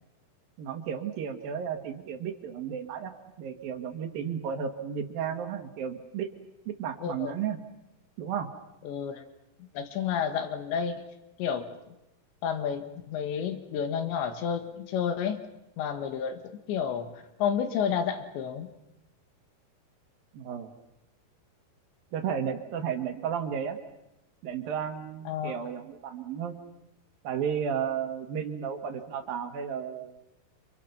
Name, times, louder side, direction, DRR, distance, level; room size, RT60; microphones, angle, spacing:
voice 1, 0.6-3.1 3.4-6.3 6.7-7.6 8.2-8.5 20.3-20.7 22.1-23.8 24.4-26.5 27.2-30.2, right 7 dB, 60° right, 6 dB, 3.2 m, -33 dB
voice 2, 7.0-7.3 8.9-9.3 9.6-11.0 11.4-11.7 12.4-15.4 15.8-17.1 17.4-18.7 25.3-25.5, left 7 dB, 90° left, 8 dB, 4.0 m, -30 dB
30.0 x 26.5 x 6.0 m, 0.89 s
omnidirectional pair, 5.0 m